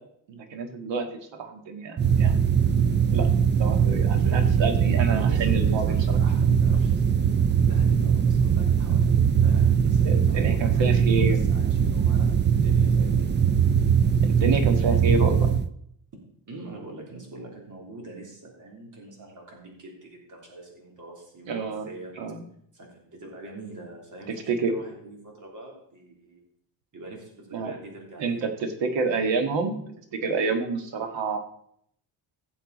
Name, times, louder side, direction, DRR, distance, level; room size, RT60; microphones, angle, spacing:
voice 1, 0.3-2.4 3.1-5.8 10.0-11.4 14.2-15.5 21.5-21.8 22.2-22.4 24.5-24.7 27.5-27.7 28.2-29.8 30.1-31.4, right 4 dB, 70° right, 6 dB, 1.8 m, -28 dB
sound 1, 2.0-15.7, right 7 dB, 25° right, 0.4 m, -21 dB
voice 2, 4.2-4.7 5.1-7.3 7.6-13.3 16.5-22.2 22.7-26.4 26.9-28.6, right 2 dB, 40° right, 0 dB, 3.4 m, -44 dB
16.5 x 7.1 x 4.1 m, 0.69 s
cardioid pair, 145°, 45 cm